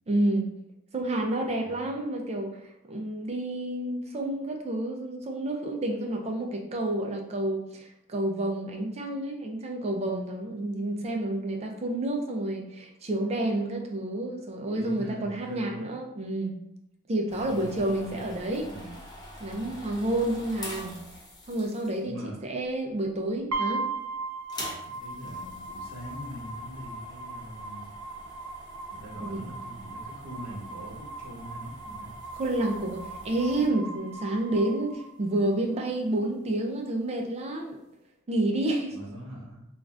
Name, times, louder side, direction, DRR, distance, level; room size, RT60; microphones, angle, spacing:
voice 1, 0.1-0.5 0.9-16.6 17.1-18.7 19.4-21.0 21.5-22.1 22.4-23.9 29.2-29.4 32.4-37.8 38.3-39.0, right 1 dB, 30° right, 2 dB, 0.4 m, -29 dB
voice 2, 1.4-1.9 14.7-15.9 17.3-19.0 22.0-22.4 24.8-27.9 28.9-32.1 38.9-39.7, equal, 65° right, -3 dB, 0.9 m, -43 dB
sound 1, 17.3-22.2 23.0-23.4 23.7-23.8 24.3-33.7, left 1 dB, 20° left, 0.6 m, -46 dB
sound 2, 23.5-35.5, right 3 dB, 85° right, 0.5 m, -38 dB
2.4 x 2.4 x 3.2 m, 0.82 s
head